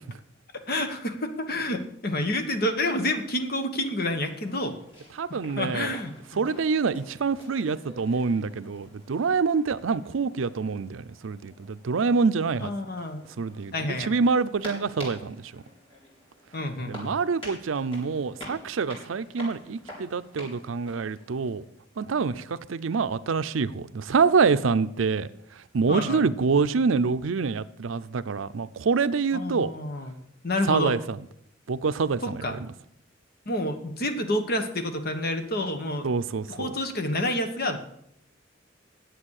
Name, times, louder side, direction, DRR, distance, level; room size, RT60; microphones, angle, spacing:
voice 1, 0.7-4.8 5.6-6.4 12.6-13.2 13.7-14.1 16.5-17.1 25.9-26.2 29.3-30.2 30.4-31.0 32.2-32.6 33.5-36.1 36.5-37.8, left 1 dB, 50° left, 1.3 m, -29 dB
sound 1, 4.1-21.6, equal, 30° left, 4.3 m, -47 dB
voice 2, 5.2-5.9 6.4-12.7 13.4-15.6 16.9-21.6 22.0-25.3 25.7-29.7 30.6-31.2 31.7-32.6 36.0-36.7, right 5 dB, 80° right, 0.5 m, -26 dB
10.0 x 8.0 x 6.5 m
head